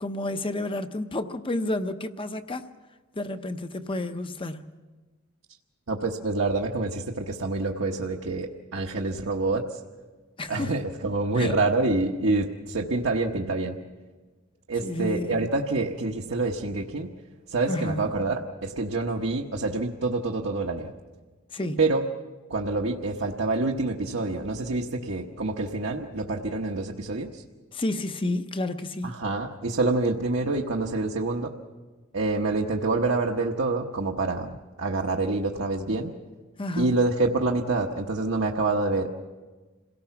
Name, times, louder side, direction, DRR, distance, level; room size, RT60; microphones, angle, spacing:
voice 1, 0.0-2.7 3.1-4.7 10.4-10.7 11.4-11.6 14.8-15.4 17.7-18.1 21.5-21.8 27.7-29.2 36.6-37.0, left 2 dB, 25° left, 0.8 m, -30 dB
voice 2, 5.9-9.6 10.5-13.8 14.7-17.1 17.5-20.9 21.8-22.0 22.5-27.4 29.0-31.5 32.1-36.1 36.8-39.1, right 3 dB, 60° right, 1.1 m, -27 dB
27.0 x 17.5 x 5.9 m
head